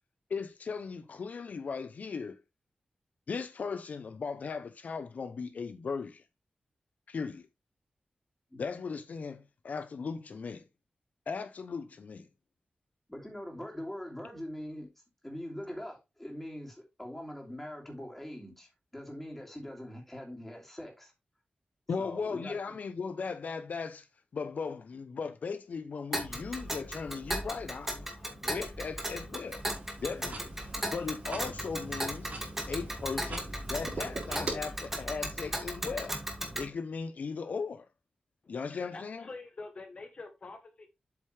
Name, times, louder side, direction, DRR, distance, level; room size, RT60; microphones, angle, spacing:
voice 1, 0.3-2.4 3.3-6.2 7.1-7.4 8.6-10.6 11.3-12.3 21.9-24.1 24.3-29.6 30.0-32.3 32.7-36.2 36.5-37.9 38.5-39.2, left 5 dB, 65° left, 0.6 m, -37 dB
voice 2, 13.1-14.9 15.2-21.1 22.0-22.8, equal, 10° left, 2.8 m, -43 dB
Tick, 26.1-36.7, equal, 10° right, 2.1 m, -37 dB
sound 1, 29.5-34.5, right 3 dB, 65° right, 4.0 m, -43 dB
voice 3, 38.4-40.9, left 3 dB, 45° left, 1.1 m, -46 dB
8.0 x 6.6 x 3.3 m
wide cardioid pair, 160°, 3 cm